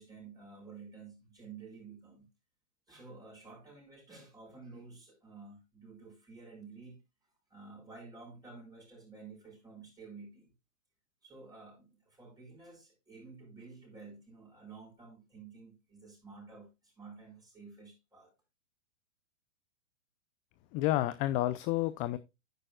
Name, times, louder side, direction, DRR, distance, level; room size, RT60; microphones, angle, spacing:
voice 1, 0.0-2.3 2.9-7.0 7.5-10.5 11.2-18.3, right 4 dB, 10° right, 5.2 m, -51 dB
voice 2, 20.7-22.2, left 15 dB, 25° left, 0.4 m, -30 dB
10.0 x 8.9 x 2.3 m
hypercardioid pair, 120°, 35 cm